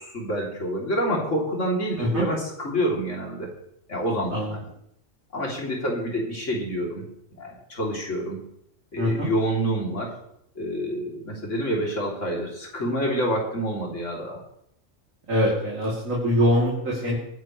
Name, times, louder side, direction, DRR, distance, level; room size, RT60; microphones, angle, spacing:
voice 1, 0.0-3.5 3.9-4.6 5.3-7.0 7.4-8.4 8.9-10.2 10.5-14.4, equal, 65° left, -2 dB, 3.5 m, -27 dB
voice 2, 9.0-9.3 15.3-17.1, equal, 80° right, -5 dB, 3.5 m, -23 dB
22.5 x 10.5 x 3.3 m, 0.73 s
omnidirectional pair, 1.4 m